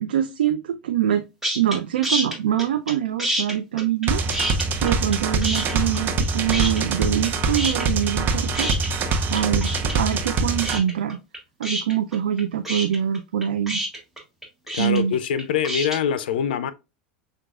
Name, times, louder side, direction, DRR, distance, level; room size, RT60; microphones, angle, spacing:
voice 1, 0.0-1.3 1.6-4.2 4.8-8.7 9.3-11.2 11.6-13.8 14.8-15.1, right 10 dB, 80° right, 0.3 m, -24 dB
sound 1, 1.4-1.8 2.0-2.9 3.2-5.2 5.4-6.2 6.5-7.3 7.5-16.0, equal, 5° right, 1.3 m, -28 dB
sound 2, 4.1-10.8, right 3 dB, 40° right, 0.7 m, -24 dB
voice 2, 14.7-16.7, left 8 dB, 75° left, 0.4 m, -24 dB
6.0 x 2.3 x 2.3 m
hypercardioid pair, 90°, 5 cm